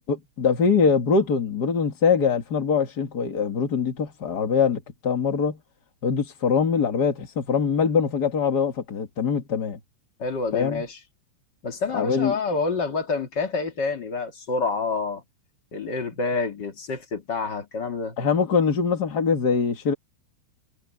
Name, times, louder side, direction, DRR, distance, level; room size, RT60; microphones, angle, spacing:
voice 1, 0.1-5.6 6.0-9.8 10.5-10.8 11.9-12.4 18.2-19.9, left 6 dB, 60° left, 1.0 m, -23 dB
voice 2, 10.2-11.0 11.6-15.2 15.7-18.2, left 4 dB, 35° left, 1.9 m, -28 dB
omnidirectional pair, 4.9 m